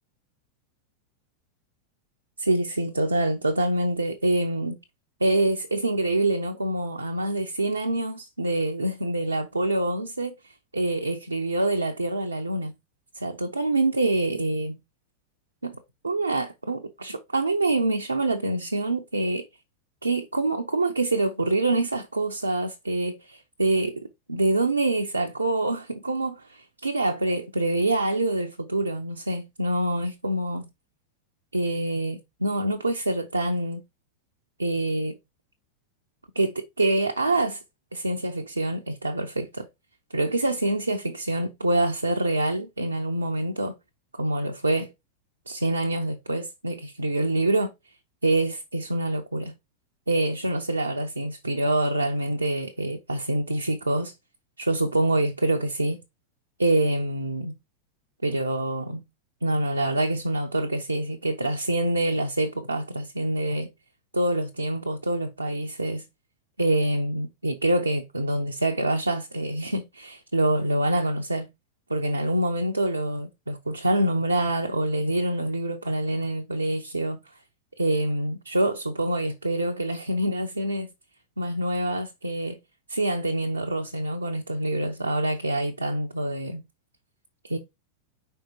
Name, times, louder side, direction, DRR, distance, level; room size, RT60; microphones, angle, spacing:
voice 1, 2.4-4.8 5.2-12.7 13.1-14.8 15.6-15.8 16.0-19.5 20.0-30.6 31.5-33.8 34.6-35.2 36.4-37.6 37.9-39.7 40.1-43.7 44.1-44.9 45.5-47.7 48.2-49.5 50.1-54.1 54.6-56.0 56.6-57.6 58.2-59.0 59.4-63.7 64.1-66.1 66.6-71.5 71.9-77.2 77.8-80.9 81.4-82.6 82.9-86.6 87.5-87.6, right 2 dB, 80° right, 0.6 m, -26 dB
4.8 x 4.5 x 4.5 m
figure-of-eight pair, 90°, 0 cm